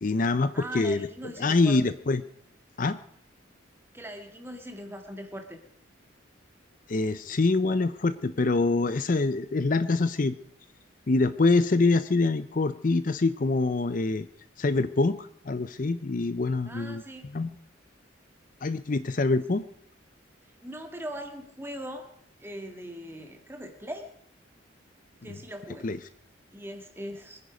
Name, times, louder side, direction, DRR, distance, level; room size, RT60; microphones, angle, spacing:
voice 1, 0.0-1.1 1.4-2.2 2.8-3.0 6.9-10.4 11.1-14.3 14.6-17.0 17.3-17.5 18.6-19.6 25.8-26.0, left 3 dB, 40° left, 13 dB, 0.5 m, -25 dB
voice 2, 0.5-1.9 3.9-5.6 16.7-17.3 20.6-22.1 22.4-24.1 25.2-25.9 26.5-27.4, equal, 10° right, 5 dB, 1.8 m, -40 dB
24.0 x 9.9 x 5.1 m, 0.73 s
head